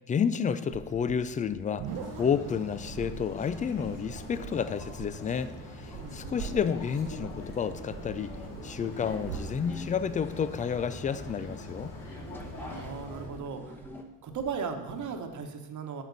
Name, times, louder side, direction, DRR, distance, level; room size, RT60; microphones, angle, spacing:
voice 1, 0.1-8.3 8.6-11.9, left 7 dB, 20° left, 14 dB, 0.3 m, -30 dB
sound 1, 0.7-15.4, right 8 dB, 70° right, 0.8 m, -45 dB
sound 2, 1.8-13.3, left 2 dB, 50° left, 2.6 m, -43 dB
voice 2, 6.0-6.4 12.6-13.8 14.2-16.0, right 5 dB, 45° right, 5 dB, 1.2 m, -37 dB
sound 3, 8.3-14.0, left 1 dB, 5° left, 1.0 m, -46 dB
9.3 x 6.4 x 4.0 m, 1.1 s
supercardioid pair, 90°, 42 cm